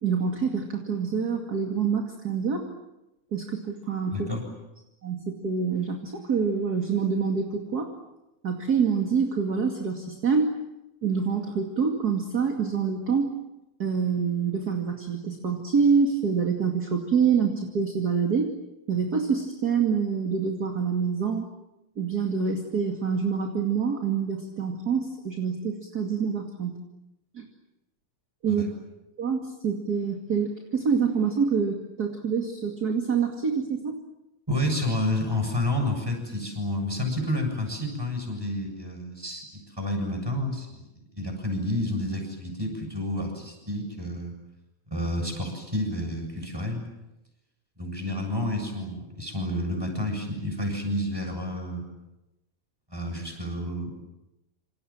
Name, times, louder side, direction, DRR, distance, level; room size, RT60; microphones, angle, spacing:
voice 1, 0.0-2.7 3.3-4.3 5.0-7.9 8.4-10.5 11.0-13.3 13.8-18.5 18.9-21.5 22.0-26.8 27.3-27.4 28.4-28.6 29.2-34.0, right 6 dB, 30° right, 3 dB, 2.4 m, -26 dB
voice 2, 4.1-4.4 28.5-28.7 34.5-39.4 39.8-40.9 41.1-44.3 44.9-46.8 47.8-51.8 52.9-53.9, left 1 dB, 5° right, 4 dB, 7.2 m, -30 dB
28.0 x 27.0 x 7.4 m, 0.93 s
omnidirectional pair, 4.1 m